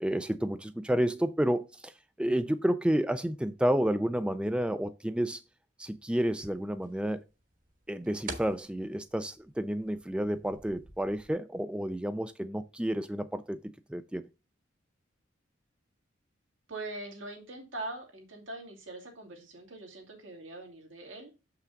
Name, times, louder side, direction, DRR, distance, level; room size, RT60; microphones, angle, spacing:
voice 1, 0.0-1.9 2.2-5.4 5.8-7.2 7.9-14.3, right 1 dB, 5° right, 0.3 m, -30 dB
sound 1, 6.0-11.3, right 3 dB, 45° right, 1.3 m, -48 dB
voice 2, 16.7-21.3, right 2 dB, 85° right, 2.6 m, -42 dB
7.0 x 5.7 x 3.9 m
head